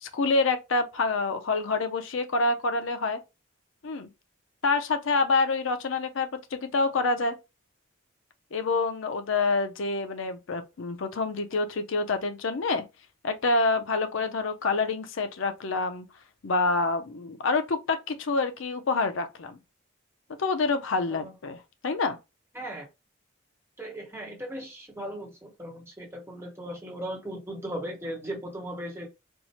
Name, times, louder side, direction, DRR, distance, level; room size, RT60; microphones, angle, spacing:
voice 1, 0.0-3.2 3.8-4.1 4.6-7.4 8.5-12.8 13.2-16.1 16.4-19.6 20.4-21.6 21.8-22.2, left 3 dB, 70° left, 0.5 m, -27 dB
voice 2, 22.5-22.9 23.8-29.1, right 1 dB, 10° right, 0.9 m, -37 dB
4.4 x 2.1 x 2.8 m
head